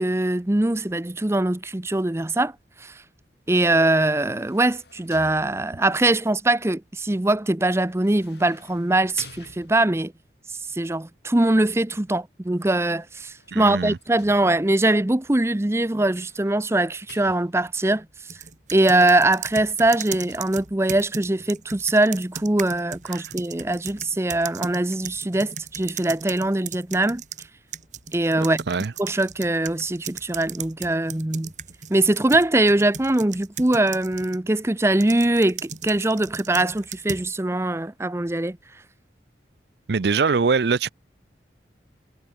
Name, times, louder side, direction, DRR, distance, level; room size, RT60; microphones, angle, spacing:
voice 1, 0.0-2.5 2.8-3.0 3.5-10.1 10.7-18.1 18.7-27.2 28.1-28.6 29.0-31.5 31.9-38.6, right 2 dB, 15° right, 0.6 m, -22 dB
sound 1, 3.6-6.0 7.9-10.2 13.0-14.9 15.9-17.9 19.2-20.4, left 4 dB, 65° left, 5.6 m, -51 dB
voice 2, 13.5-14.0 23.1-23.2 28.7-28.9 39.9-40.9, right 5 dB, 65° right, 0.5 m, -22 dB
sound 2, 18.3-27.5 27.7-34.4 35.0-37.3, right 7 dB, 40° right, 2.5 m, -37 dB
head